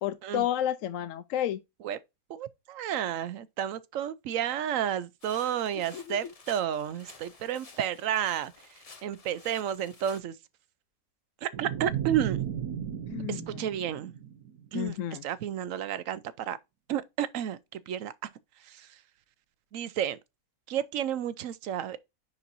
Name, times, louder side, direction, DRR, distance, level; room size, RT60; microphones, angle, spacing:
voice 1, 0.0-1.6 5.7-6.3 13.1-13.7 14.7-15.2, left 11 dB, 70° left, 0.9 m, -32 dB
voice 2, 2.3-8.5 9.0-10.3 11.4-12.4 13.3-14.1 14.7-14.9 15.2-16.6 16.9-17.6 17.9-18.1 18.7-18.9 19.7-20.2 20.7-22.0, right 10 dB, 70° right, 1.0 m, -31 dB
sound 1, 5.2-10.2, left 4 dB, 30° left, 0.8 m, -53 dB
sound 2, 11.5-14.8, right 10 dB, 85° right, 1.4 m, -35 dB
9.9 x 4.3 x 2.6 m
omnidirectional pair, 1.5 m